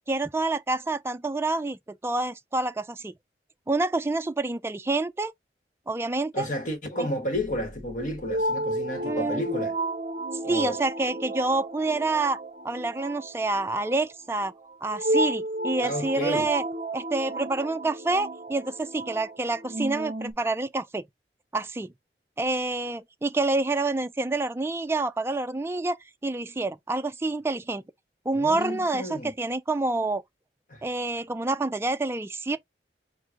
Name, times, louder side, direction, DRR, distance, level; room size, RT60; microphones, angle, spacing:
voice 1, 0.1-3.1 3.7-5.3 5.9-6.5 7.0-7.1 9.0-9.4 10.5-12.4 12.6-14.5 14.8-16.6 16.9-21.1 21.5-21.9 22.4-26.0 26.2-27.8 28.3-30.2 30.8-32.6, right 2 dB, 15° right, 0.3 m, -27 dB
voice 2, 6.3-9.8 10.4-10.8 15.8-16.5 28.3-29.3 30.7-30.8, equal, 45° left, 1.2 m, -31 dB
sound 1, 7.3-20.3, right 1 dB, 40° right, 0.7 m, -32 dB
4.7 x 2.2 x 3.7 m
head